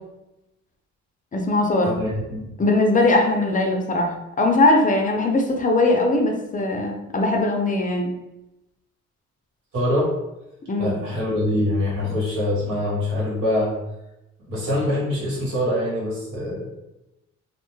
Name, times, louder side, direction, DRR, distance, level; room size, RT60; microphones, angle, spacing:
voice 1, 1.3-2.0 2.6-8.1 10.7-10.9, left 2 dB, 25° left, 2 dB, 0.4 m, -20 dB
voice 2, 1.8-2.5 9.7-10.1 10.8-13.7 14.5-16.7, left 1 dB, 80° right, -5 dB, 1.4 m, -24 dB
2.5 x 2.1 x 3.0 m, 0.93 s
cardioid pair, 90°, 30 cm